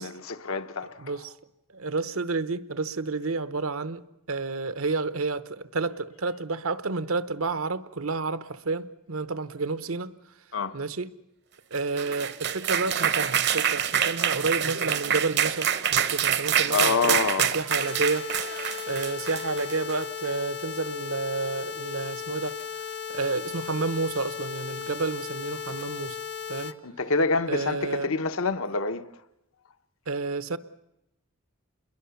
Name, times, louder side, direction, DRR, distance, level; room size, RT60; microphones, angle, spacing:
voice 1, 0.0-1.1 10.5-10.8 16.7-17.6 26.8-29.1, left 4 dB, 75° left, 1.0 m, -27 dB
voice 2, 1.0-1.3 1.7-4.0 4.3-10.1 10.7-11.1 11.7-22.6 23.1-26.2 26.5-26.7 27.5-28.1 30.1-30.6, right 3 dB, 75° right, 0.9 m, -30 dB
sound 1, 11.8-20.0, right 9 dB, 50° right, 0.8 m, -26 dB
sound 2, 17.7-26.7, left 7 dB, 50° left, 1.0 m, -36 dB
28.0 x 22.0 x 7.0 m
head